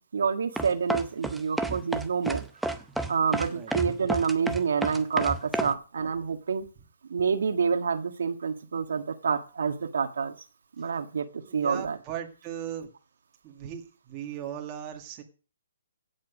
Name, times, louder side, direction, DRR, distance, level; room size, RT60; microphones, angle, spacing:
voice 1, 0.0-2.4 3.1-6.6 7.1-10.3 10.8-11.3 11.5-12.0, right 6 dB, 70° right, 7 dB, 1.6 m, -28 dB
sound 1, 0.6-5.7, right 2 dB, ahead, 0.6 m, -30 dB
voice 2, 11.4-12.9 13.4-15.2, right 10 dB, 20° right, 2 dB, 1.8 m, -38 dB
16.0 x 7.5 x 6.2 m, 0.37 s
hypercardioid pair, 170°, 0 cm